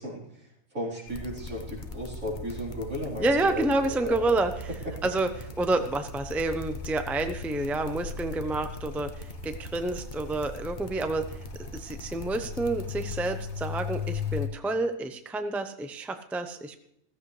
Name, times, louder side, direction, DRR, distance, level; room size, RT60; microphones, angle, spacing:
voice 1, 0.0-4.3, equal, 75° right, -5 dB, 4.5 m, -35 dB
sound 1, 1.1-14.5, left 4 dB, 55° left, 1.9 m, -39 dB
sound 2, 1.1-13.3, left 3 dB, 40° left, 1.0 m, -43 dB
voice 2, 3.2-4.5 5.0-5.3 5.6-11.3 11.7-16.9, right 2 dB, ahead, 7 dB, 0.6 m, -29 dB
16.0 x 15.0 x 3.3 m, 0.76 s
omnidirectional pair, 1.4 m